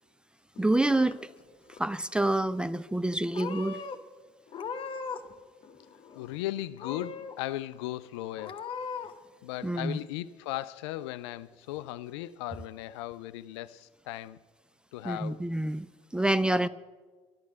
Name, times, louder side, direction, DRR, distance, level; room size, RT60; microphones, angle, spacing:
Purr / Meow, 0.6-1.4 1.7-2.3 2.9-3.1 3.3-4.0 4.5-5.3 5.6-6.4 6.8-7.4 7.8-7.9 8.4-9.1, left 5 dB, 35° left, 1.0 m, -39 dB
voice 1, 0.6-1.2 1.7-3.8 9.6-10.0 15.0-15.9 16.1-16.7, right 1 dB, 5° right, 0.4 m, -27 dB
voice 2, 6.1-8.6 9.4-14.4 14.9-15.5 16.5-16.7, left 15 dB, 60° left, 0.4 m, -37 dB
12.0 x 11.5 x 7.2 m
figure-of-eight pair, 60°, 16 cm